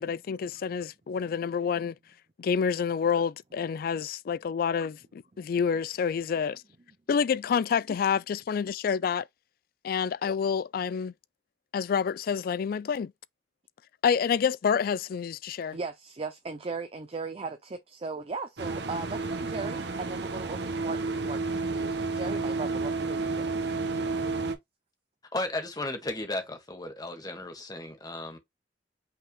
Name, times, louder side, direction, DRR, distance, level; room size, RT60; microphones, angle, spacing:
voice 1, 0.0-2.0 2.4-6.6 7.1-9.3 9.8-11.1 11.7-13.1 14.0-15.8, left 6 dB, 55° left, 0.3 m, -28 dB
voice 2, 15.7-23.4, right 4 dB, 35° right, 0.5 m, -37 dB
sound 1, 18.6-24.5, right 3 dB, 70° right, 1.0 m, -31 dB
voice 3, 25.3-28.4, left 2 dB, 20° left, 1.5 m, -34 dB
5.6 x 3.5 x 2.3 m
head